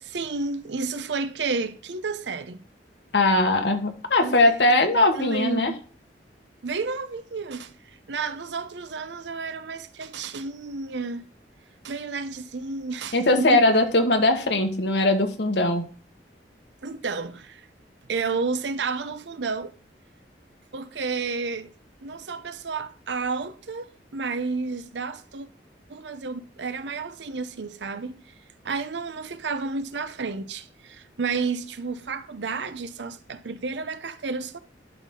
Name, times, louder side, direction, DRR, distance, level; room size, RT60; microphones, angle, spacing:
voice 1, 0.0-2.6 4.2-5.8 6.6-7.7 8.1-11.2 11.8-13.6 16.8-17.7 18.1-19.7 20.7-21.7 22.0-25.5 25.9-28.2 28.6-34.6, right 4 dB, 90° right, 0.7 m, -31 dB
voice 2, 3.1-5.7 13.1-15.8, left 2 dB, 80° left, 1.4 m, -20 dB
11.5 x 4.1 x 3.7 m
head